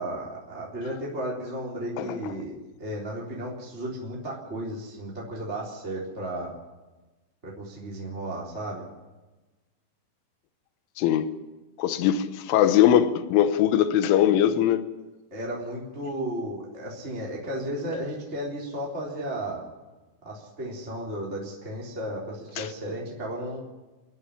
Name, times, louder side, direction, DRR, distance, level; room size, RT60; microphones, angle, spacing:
voice 1, 0.0-2.5 2.8-6.5 7.4-8.8 15.3-19.6 20.2-23.6, right 1 dB, 15° right, 3.0 m, -34 dB
voice 2, 11.0-11.3 11.8-14.8 22.6-22.7, left 10 dB, 75° left, 3.4 m, -21 dB
28.5 x 11.0 x 9.8 m
omnidirectional pair, 5.8 m